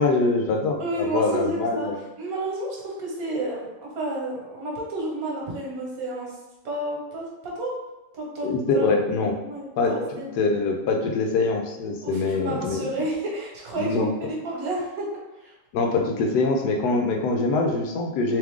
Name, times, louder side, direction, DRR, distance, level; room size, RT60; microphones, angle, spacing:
voice 1, 0.0-2.0 8.4-9.3 9.8-12.9 13.8-14.1 15.7-18.4, left 3 dB, 70° left, 3 dB, 1.1 m, -24 dB
voice 2, 0.8-1.9 2.2-6.3 6.6-7.3 7.5-7.7 8.3-8.5 8.7-8.9 9.4-10.3 12.0-15.1 15.4-15.5, right 1 dB, 55° right, -3 dB, 1.4 m, -30 dB
3.6 x 3.2 x 3.5 m, 0.98 s
omnidirectional pair, 2.0 m